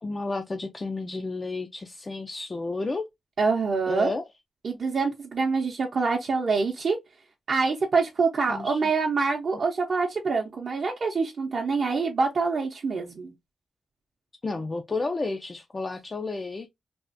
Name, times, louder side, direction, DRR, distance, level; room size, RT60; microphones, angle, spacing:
voice 1, 0.0-3.1 3.9-4.2 8.5-8.9 14.4-16.7, left 3 dB, 30° left, 0.4 m, -31 dB
voice 2, 3.4-4.1 4.6-7.0 7.5-13.3, right 4 dB, 55° right, 0.6 m, -25 dB
3.4 x 2.4 x 2.5 m
wide cardioid pair, 120°, 0 cm